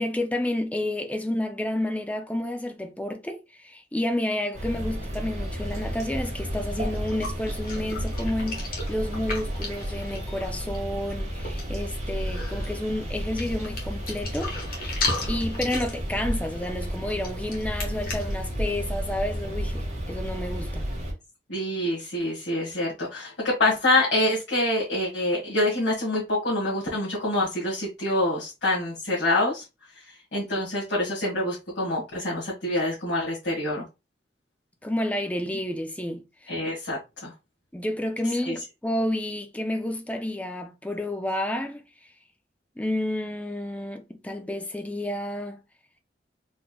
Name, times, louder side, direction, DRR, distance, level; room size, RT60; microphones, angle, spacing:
voice 1, 0.0-14.5 14.8-15.0 15.3-20.9 34.8-36.2 37.7-41.8 42.8-45.6, left 1 dB, 10° left, 0.4 m, -30 dB
sound 1, 4.5-21.1, equal, 40° right, 1.4 m, -32 dB
sound 2, 6.5-6.6 6.9-10.8 11.1-11.2 11.4-11.8 12.2-12.8 13.4-18.4, left 2 dB, 55° left, 1.3 m, -34 dB
voice 2, 21.5-29.6 30.3-33.8 36.5-37.3 38.5-38.6, left 1 dB, 80° left, 1.5 m, -26 dB
4.1 x 3.2 x 2.2 m
head